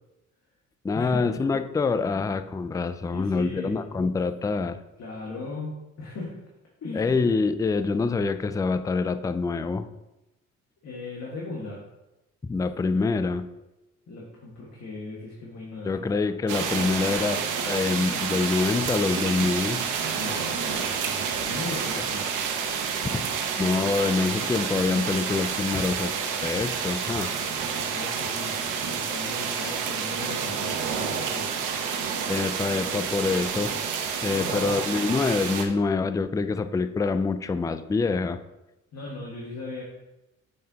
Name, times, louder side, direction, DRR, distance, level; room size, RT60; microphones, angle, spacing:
voice 1, 0.8-4.8 6.9-9.9 12.4-13.5 15.9-19.8 22.0-22.1 23.0-23.2 23.6-26.2 26.4-27.3 32.3-33.7 34.2-38.4, left 4 dB, 10° left, 11 dB, 0.3 m, -26 dB
voice 2, 3.1-3.8 5.0-6.4 6.8-7.1 10.8-11.8 14.1-16.0 20.1-22.4 27.8-31.9 34.3-34.7 38.9-39.8, left 3 dB, 60° left, -4 dB, 1.8 m, -38 dB
sound 1, 16.5-35.6, right 6 dB, 90° right, 1.0 m, -29 dB
7.7 x 7.4 x 2.9 m, 0.98 s
cardioid pair, 90°, 30 cm